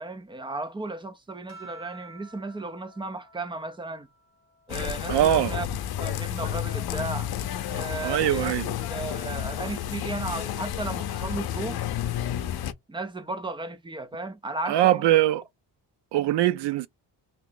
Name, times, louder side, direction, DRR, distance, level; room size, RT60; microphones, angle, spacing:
voice 1, 0.0-4.1 4.7-5.7 6.0-7.3 7.7-11.8 12.9-15.2, right 2 dB, 15° right, 0.3 m, -35 dB
sound 1, 1.5-6.3 6.7-8.5 9.7-10.2, right 2 dB, 30° right, 1.5 m, -53 dB
sound 2, 4.7-12.7, left 11 dB, 60° left, 0.6 m, -31 dB
voice 2, 5.1-5.6 8.0-8.7 14.7-15.4 16.1-16.9, right 13 dB, 80° right, 0.5 m, -22 dB
3.0 x 3.0 x 3.7 m
wide cardioid pair, 170°, 41 cm